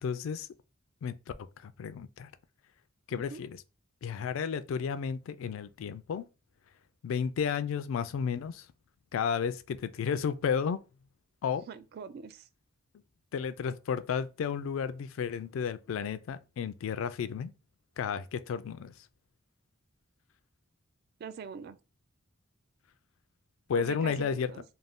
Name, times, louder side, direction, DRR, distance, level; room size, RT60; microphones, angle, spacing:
voice 1, 0.0-0.5 1.0-1.2 1.6-2.3 3.1-3.6 4.0-6.3 7.0-8.7 9.1-10.8 11.4-11.7 13.3-17.5 18.0-18.9 23.7-24.5, left 6 dB, 70° left, 0.3 m, -32 dB
voice 2, 3.1-3.4 11.7-12.5 21.2-21.8 23.7-24.6, right 6 dB, 50° right, 0.3 m, -43 dB
2.5 x 2.3 x 3.4 m
head